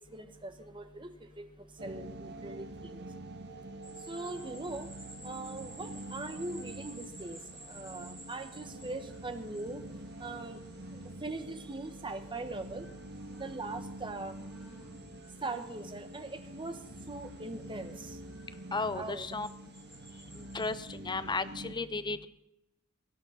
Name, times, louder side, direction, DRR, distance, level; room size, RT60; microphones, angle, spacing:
voice 1, 0.0-1.5 1.8-3.0 4.1-4.9 5.2-7.4 7.7-9.8 10.2-10.6 11.2-12.9 13.3-14.3 15.4-16.8 17.1-18.2 18.9-19.2, right 2 dB, 25° right, 7 dB, 1.3 m, -41 dB
sound 1, 1.8-21.8, right 1 dB, 50° right, 1.3 m, -46 dB
sound 2, 3.8-20.9, right 1 dB, ahead, 6.5 m, -55 dB
voice 2, 18.7-19.5 20.4-22.3, left 3 dB, 20° left, 13 dB, 0.7 m, -34 dB
17.5 x 12.0 x 5.8 m, 0.85 s
head